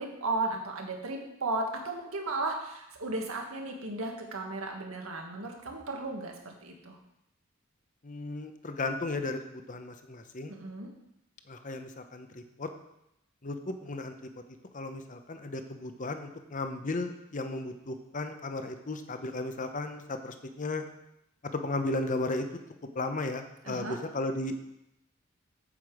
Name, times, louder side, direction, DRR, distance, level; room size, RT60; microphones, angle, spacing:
voice 1, 0.0-7.0 10.5-10.9 23.6-24.0, right 2 dB, 85° right, 1 dB, 1.8 m, -35 dB
voice 2, 8.0-10.5 11.5-12.7 13.4-14.1 14.7-20.8 21.5-22.5 22.9-24.5, left 2 dB, 40° left, 8 dB, 0.8 m, -35 dB
8.7 x 8.0 x 4.9 m, 0.83 s
head